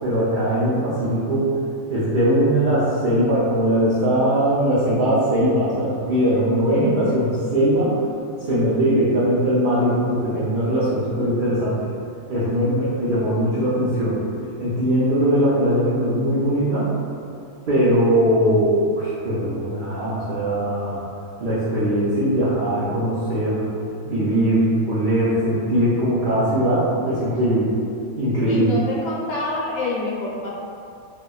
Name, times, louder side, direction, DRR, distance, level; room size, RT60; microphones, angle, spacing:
voice 1, 0.0-1.5 1.9-8.0 8.4-11.8 12.3-14.2 14.6-16.9 17.7-21.0 21.4-23.7 24.0-27.7 28.2-28.6, right 1 dB, 75° right, -9 dB, 0.4 m, -20 dB
voice 2, 28.4-30.5, left 3 dB, 85° left, -5 dB, 1.1 m, -26 dB
2.9 x 2.1 x 2.2 m, 2.5 s
omnidirectional pair, 1.4 m